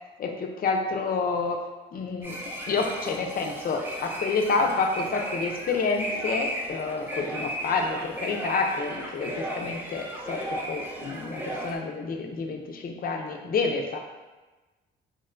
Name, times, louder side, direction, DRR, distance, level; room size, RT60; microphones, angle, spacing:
voice 1, 0.2-1.6 1.9-2.4 2.7-14.0, left 4 dB, 45° left, 2 dB, 0.5 m, -28 dB
sound 1, 2.2-11.8, right 1 dB, 10° right, 0.6 m, -35 dB
2.9 x 2.1 x 3.7 m, 1.2 s
cardioid pair, 90°, 20 cm